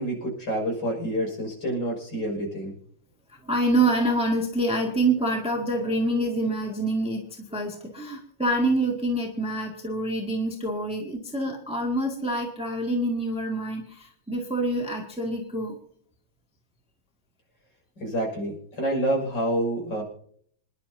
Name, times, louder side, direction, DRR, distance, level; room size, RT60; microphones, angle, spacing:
voice 1, 0.0-2.7 18.0-20.0, right 1 dB, 60° left, 0 dB, 6.9 m, -28 dB
voice 2, 3.4-15.8, right 1 dB, 5° right, 0 dB, 2.0 m, -26 dB
27.5 x 11.0 x 2.8 m, 0.62 s
omnidirectional pair, 2.2 m